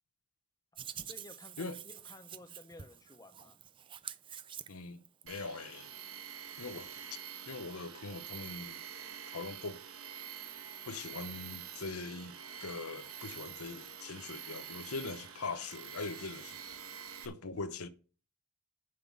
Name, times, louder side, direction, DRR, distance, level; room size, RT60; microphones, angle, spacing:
Hands, 0.8-5.2, right 9 dB, 25° right, 0.4 m, -47 dB
voice 1, 0.9-3.6, left 2 dB, 15° left, 0.6 m, -54 dB
voice 2, 4.7-5.9 6.6-6.9 7.5-8.8 9.3-9.8 10.9-16.6 17.2-17.9, left 3 dB, 90° left, 0.9 m, -42 dB
Tools, 5.3-17.3, right 8 dB, 75° right, 1.3 m, -47 dB
7.7 x 5.6 x 7.3 m
head